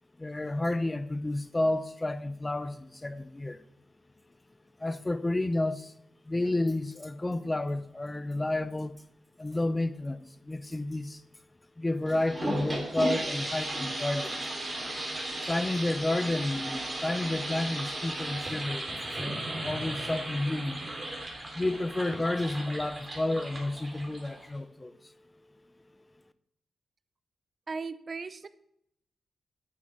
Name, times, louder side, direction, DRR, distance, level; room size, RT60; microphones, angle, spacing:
voice 1, 0.2-3.6 4.8-5.9 6.2-8.9 9.4-11.2 11.8-14.4 15.2-18.9 19.2-20.8 21.5-24.9, left 2 dB, 20° left, 0.8 m, -31 dB
sound 1, 12.1-24.6, right 1 dB, 25° right, 3.4 m, -35 dB
voice 2, 27.7-28.5, right 4 dB, 50° right, 0.7 m, -37 dB
9.6 x 7.0 x 5.9 m
cardioid pair, 70°, 0 cm